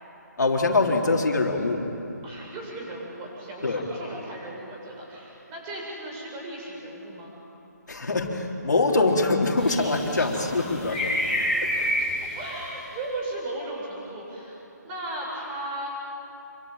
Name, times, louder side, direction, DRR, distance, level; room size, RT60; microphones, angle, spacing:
voice 1, 0.4-1.8 3.6-3.8 7.9-11.0 11.6-11.9, left 3 dB, 75° left, 1 dB, 3.9 m, -24 dB
voice 2, 2.2-7.3 10.1-10.5 11.1-11.2 11.5-11.6 12.3-15.9, right 1 dB, 20° right, -2 dB, 7.9 m, -36 dB
sound 1, 9.6-12.8, left 1 dB, 5° right, 7.7 m, -28 dB
27.0 x 24.0 x 9.1 m, 2.9 s
figure-of-eight pair, 155°, 10 cm